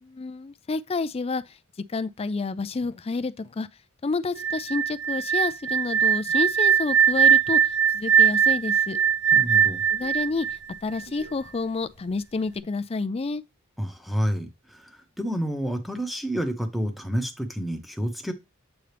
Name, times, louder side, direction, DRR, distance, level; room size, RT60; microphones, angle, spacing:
voice 1, 0.0-1.5 1.9-3.7 4.0-9.0 9.9-13.4, left 3 dB, 30° left, 0.4 m, -29 dB
sound 1, 4.4-11.3, right 7 dB, 55° right, 0.7 m, -21 dB
voice 2, 9.3-9.8 13.8-18.3, equal, ahead, 0.9 m, -29 dB
8.0 x 3.8 x 3.4 m
head